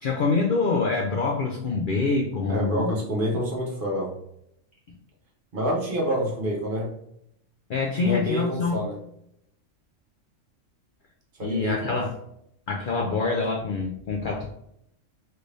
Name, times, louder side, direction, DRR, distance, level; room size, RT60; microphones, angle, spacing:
voice 1, 0.0-2.9 7.7-8.8 11.4-12.1 12.7-14.5, left 4 dB, 65° left, 1 dB, 0.5 m, -25 dB
voice 2, 2.5-4.1 5.5-6.9 8.0-9.0 11.4-12.0, equal, 50° right, -2 dB, 0.9 m, -27 dB
3.3 x 2.6 x 3.2 m, 0.74 s
omnidirectional pair, 1.3 m